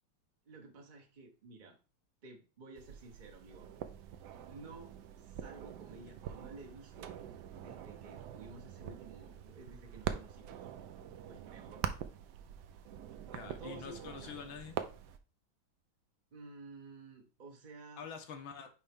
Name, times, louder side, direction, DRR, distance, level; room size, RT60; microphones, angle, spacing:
voice 1, 0.4-1.8 2.2-3.7 4.5-7.2 7.5-10.7 11.3-11.8 13.6-14.3 16.3-18.1, right 3 dB, 40° right, 0.7 m, -53 dB
sound 1, 2.8-15.2, right 9 dB, 70° right, 1.0 m, -44 dB
voice 2, 13.3-14.8 18.0-18.7, left 6 dB, 75° left, 1.7 m, -46 dB
9.3 x 3.4 x 3.6 m
omnidirectional pair, 2.2 m